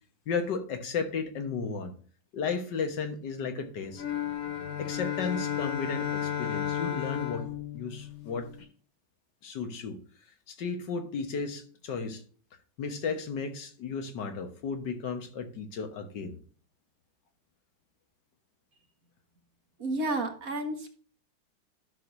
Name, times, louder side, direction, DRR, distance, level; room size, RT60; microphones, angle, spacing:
voice 1, 0.3-1.9 2.3-4.0 4.8-8.5 9.4-10.0 10.5-12.2 12.8-16.4, left 5 dB, 65° left, 1.8 m, -34 dB
sound 1, 3.9-8.6, left 10 dB, 85° left, 2.6 m, -33 dB
voice 2, 19.8-20.9, right 2 dB, 50° right, 1.6 m, -31 dB
13.0 x 6.4 x 2.6 m
omnidirectional pair, 2.1 m